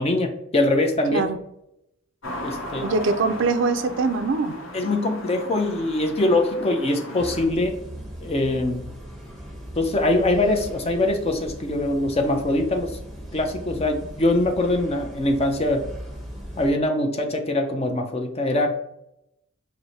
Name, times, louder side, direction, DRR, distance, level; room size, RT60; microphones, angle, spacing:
voice 1, 0.0-1.2 2.4-2.9 4.7-7.8 8.2-8.8 9.8-13.0 13.3-15.9 16.6-18.7, left 2 dB, 30° left, 4 dB, 0.5 m, -23 dB
sound 1, 2.2-7.5, left 1 dB, 75° left, 0.9 m, -36 dB
voice 2, 2.8-4.6, right 4 dB, 60° right, 10 dB, 0.4 m, -23 dB
sound 2, 7.2-16.7, equal, ahead, 0.8 m, -38 dB
4.6 x 2.1 x 3.9 m, 0.80 s
head